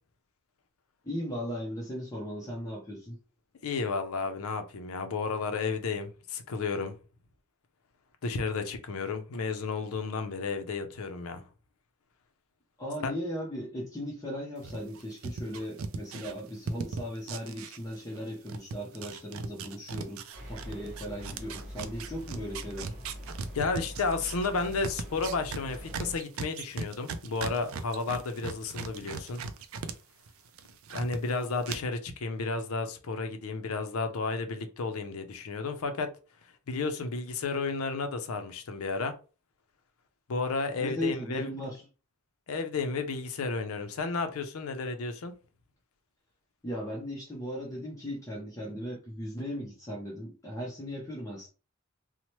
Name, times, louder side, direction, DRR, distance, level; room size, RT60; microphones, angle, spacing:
voice 1, 1.0-3.2 12.8-22.9 40.8-41.8 46.6-51.5, equal, 15° left, 0.6 m, -37 dB
voice 2, 3.6-7.0 8.2-11.5 13.0-13.1 23.5-29.4 30.9-36.1 36.7-39.1 40.3-41.5 42.5-45.3, left 4 dB, 75° left, 0.5 m, -32 dB
sound 1, 14.6-18.2 18.5-29.9 30.3-31.2 31.6-31.8, right 4 dB, 70° right, 0.4 m, -38 dB
sound 2, 20.3-26.2, equal, 30° right, 1.0 m, -43 dB
2.9 x 2.1 x 3.0 m
head